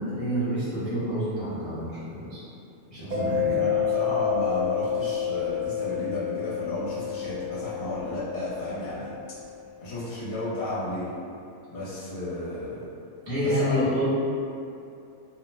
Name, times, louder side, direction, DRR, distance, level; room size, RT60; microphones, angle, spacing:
voice 1, 0.0-2.4 2.9-3.6 13.3-14.1, equal, 30° left, -15 dB, 0.6 m, -28 dB
Mallet percussion, 3.1-9.5, left 8 dB, 75° right, 1.0 m, -29 dB
voice 2, 3.5-9.2 9.8-11.1 11.7-12.9 13.4-13.9, left 1 dB, 50° left, -11 dB, 1.0 m, -33 dB
2.7 x 2.0 x 3.2 m, 2.6 s
omnidirectional pair, 1.5 m